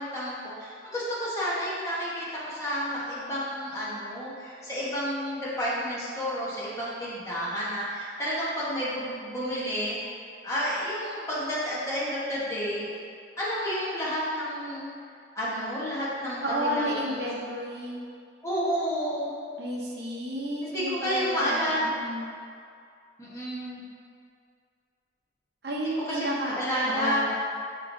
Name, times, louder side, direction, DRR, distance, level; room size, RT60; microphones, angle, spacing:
voice 1, 0.0-10.0 10.4-12.9 13.4-14.9 15.4-17.3 18.4-19.3 20.6-21.9 23.2-23.8 26.1-27.2, equal, 15° left, -9 dB, 1.0 m, -30 dB
voice 2, 16.4-18.0 19.6-21.6 21.9-22.3 25.6-26.5 26.8-27.3, equal, 65° right, -2 dB, 0.7 m, -31 dB
6.8 x 3.0 x 2.6 m, 2.3 s
head